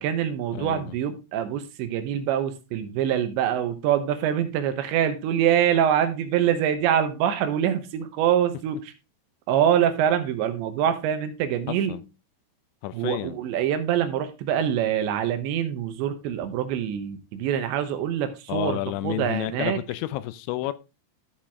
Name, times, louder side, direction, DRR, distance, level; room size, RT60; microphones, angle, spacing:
voice 1, 0.0-8.9 9.5-12.0 12.9-19.8, right 9 dB, 85° right, 3.3 m, -25 dB
voice 2, 0.5-0.9 11.9-12.0 12.8-13.4 18.5-20.7, left 16 dB, 90° left, 3.0 m, -30 dB
13.0 x 5.2 x 3.5 m
omnidirectional pair, 5.1 m